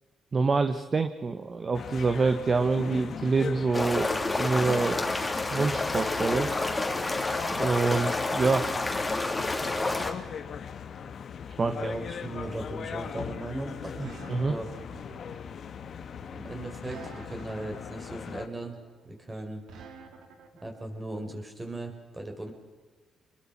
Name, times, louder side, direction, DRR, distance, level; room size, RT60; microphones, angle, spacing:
voice 1, 0.3-5.0 5.5-6.5 7.6-8.7 11.6-11.9 14.3-14.6, right 4 dB, 35° right, 9 dB, 1.3 m, -26 dB
sound 1, 1.7-18.5, left 7 dB, 55° left, 1.5 m, -40 dB
sound 2, 3.7-10.1, left 2 dB, 20° left, 3.1 m, -29 dB
voice 2, 11.6-14.7 16.3-18.8 19.0-19.6 20.1-20.2 20.6-22.5, right 1 dB, 20° right, 3 dB, 5.3 m, -37 dB
sound 3, 12.5-20.7, right 5 dB, 80° right, 3.0 m, -49 dB
27.5 x 21.5 x 6.0 m, 1.4 s
cardioid pair, 90°, 0 cm